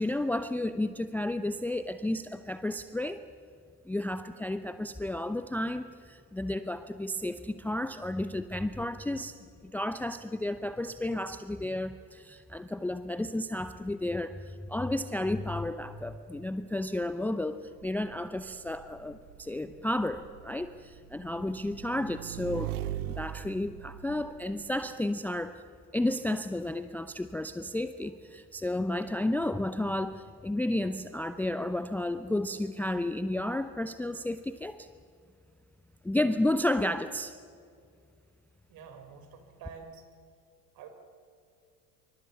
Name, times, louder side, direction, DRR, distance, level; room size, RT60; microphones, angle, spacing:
voice 1, 0.0-3.2 3.9-22.8 23.1-25.6 25.9-34.9 36.0-37.4, left 1 dB, 5° left, 11 dB, 0.7 m, -32 dB
Motorcycle / Engine, 17.8-24.9, right 14 dB, 65° right, 0.9 m, -41 dB
voice 2, 38.7-40.1 40.7-40.9, right 6 dB, 45° right, 6 dB, 4.7 m, -48 dB
26.5 x 25.0 x 7.1 m, 2.3 s
figure-of-eight pair, 70°, 47 cm